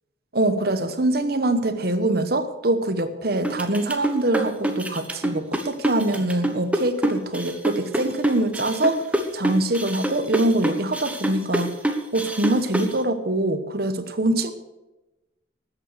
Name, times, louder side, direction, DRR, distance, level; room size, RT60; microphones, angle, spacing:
voice 1, 0.3-9.0 9.3-11.7 12.1-14.5, right 1 dB, 55° right, 10 dB, 1.1 m, -24 dB
sound 1, 3.4-12.9, right 1 dB, 5° right, 1.1 m, -26 dB
13.0 x 8.6 x 6.5 m, 1.0 s
head